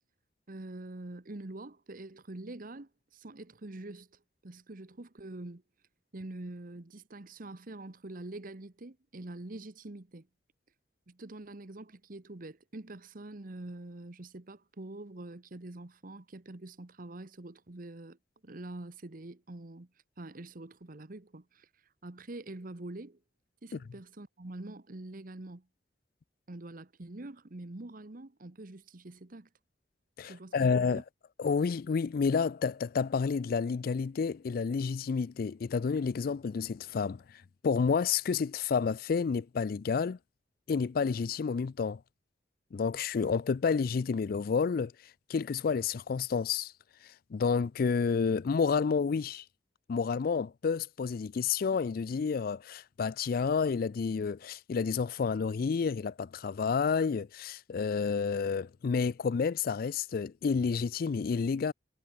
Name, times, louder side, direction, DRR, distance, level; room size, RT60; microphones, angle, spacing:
voice 1, 0.5-5.6 6.1-10.3 11.1-18.2 18.4-19.9 20.2-21.7 22.0-23.2 23.6-25.7 26.5-29.5 30.2-31.0, right 2 dB, 50° right, 1.1 m, -45 dB
voice 2, 30.2-31.0 31.4-40.2 40.7-42.0 42.7-44.9 45.3-46.7 47.3-49.4 49.9-61.7, left 5 dB, 55° left, 0.4 m, -30 dB
head